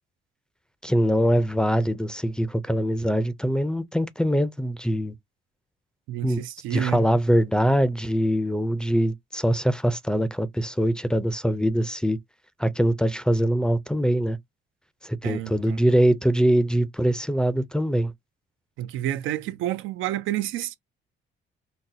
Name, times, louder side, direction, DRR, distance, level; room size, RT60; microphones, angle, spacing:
voice 1, 0.8-5.1 6.2-6.4 6.7-12.2 12.6-14.4 15.0-18.1, equal, 5° left, 0.4 m, -23 dB
voice 2, 6.1-7.0 15.2-15.8 18.8-20.8, right 13 dB, 90° right, 0.4 m, -29 dB
4.0 x 2.1 x 2.7 m
cardioid pair, 90°, 20 cm